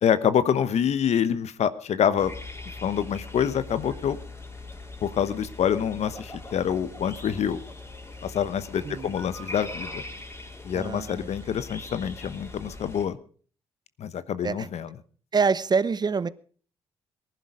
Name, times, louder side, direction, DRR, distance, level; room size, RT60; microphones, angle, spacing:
voice 1, 0.0-2.3 2.8-4.2 5.0-7.6 8.2-10.0 10.6-13.2 14.0-14.9, left 8 dB, 60° left, 15 dB, 1.0 m, -26 dB
sound 1, 2.2-13.1, left 2 dB, 20° left, 3.9 m, -41 dB
voice 2, 8.8-9.1 10.7-11.2 14.4-14.7 15.3-16.3, right 5 dB, 35° right, 18 dB, 0.8 m, -25 dB
19.0 x 11.0 x 5.0 m, 0.43 s
hypercardioid pair, 55°, 12 cm